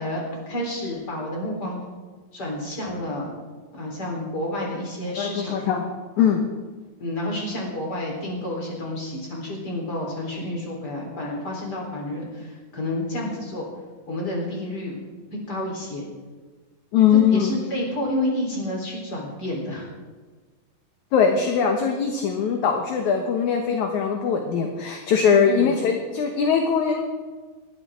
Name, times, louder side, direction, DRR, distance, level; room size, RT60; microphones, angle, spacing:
voice 1, 0.0-1.8 2.3-3.3 3.7-5.6 6.2-6.3 7.0-13.7 14.1-15.0 15.5-16.1 17.1-19.9 25.4-25.7, left 1 dB, 25° left, -2 dB, 4.2 m, -30 dB
voice 2, 5.1-5.9 6.2-6.4 16.9-17.5 21.1-27.0, left 7 dB, 65° left, 3 dB, 2.2 m, -21 dB
19.5 x 14.0 x 3.8 m, 1.4 s
omnidirectional pair, 4.2 m